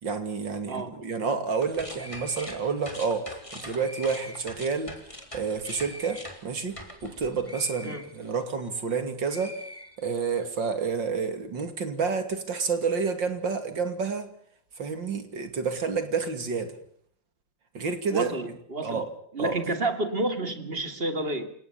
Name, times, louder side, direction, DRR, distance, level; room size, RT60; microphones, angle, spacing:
voice 1, 0.0-5.0 5.3-9.6 10.0-14.3 14.8-16.8 17.7-18.3 18.8-19.1 19.4-19.8, right 5 dB, 75° right, 3.4 m, -29 dB
sound 1, 1.6-9.0 9.3-10.4, left 1 dB, 15° left, 3.7 m, -43 dB
voice 2, 18.1-19.0 19.3-21.5, right 2 dB, 30° right, 2.8 m, -30 dB
28.5 x 18.0 x 7.1 m
omnidirectional pair, 2.0 m